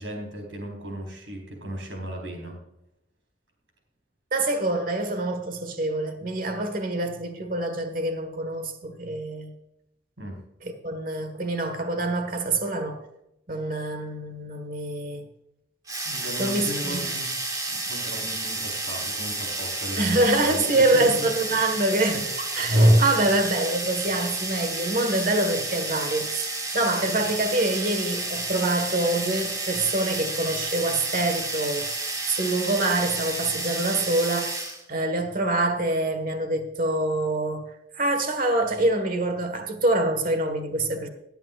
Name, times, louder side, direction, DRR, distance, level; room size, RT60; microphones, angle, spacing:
voice 1, 0.0-2.6 10.2-10.4 16.0-17.3 17.7-21.3 22.1-22.3, right 1 dB, 85° right, 4.1 m, -36 dB
voice 2, 4.3-9.5 10.6-13.0 13.5-15.2 16.4-17.1 20.0-34.6 34.9-41.1, right 2 dB, 50° right, 1.5 m, -25 dB
sound 1, 15.9-34.8, right 2 dB, 20° right, 1.7 m, -31 dB
19.0 x 9.1 x 2.4 m
head